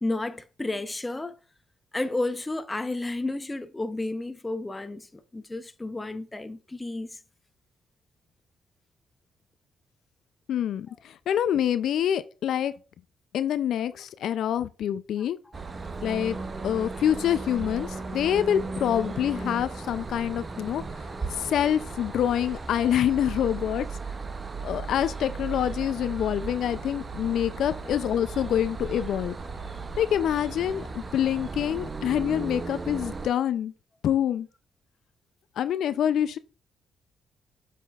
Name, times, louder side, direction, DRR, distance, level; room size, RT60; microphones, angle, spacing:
voice 1, 0.0-1.4 1.9-7.2 15.2-15.3, left 2 dB, 15° left, 0.6 m, -32 dB
voice 2, 10.5-12.8 13.3-15.4 16.0-16.4 16.6-20.8 21.3-23.9 24.6-29.4 30.0-33.7 34.0-34.5 35.6-36.4, left 10 dB, 70° left, 0.3 m, -26 dB
sound 1, 15.5-33.3, right 4 dB, 30° right, 0.6 m, -36 dB
7.1 x 5.7 x 2.3 m
cardioid pair, 90°, 0 cm